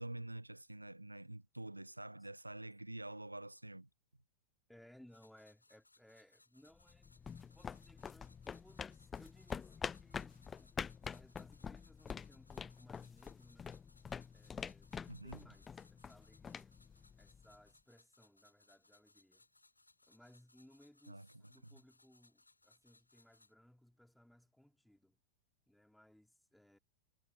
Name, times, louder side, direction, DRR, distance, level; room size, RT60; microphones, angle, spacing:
voice 1, 0.0-3.9 15.1-15.4 21.1-21.3, right 1 dB, 85° right, 0.9 m, -47 dB
voice 2, 4.7-7.1 7.5-13.8 14.3-14.9 15.2-16.8 17.2-19.5 20.0-25.2 25.7-26.8, left 1 dB, ahead, 3.0 m, -64 dB
sound 1, 5.1-23.5, left 2 dB, 85° left, 4.4 m, -70 dB
sound 2, 6.8-17.6, left 6 dB, 20° left, 0.5 m, -47 dB
figure-of-eight pair, 90°, 0 cm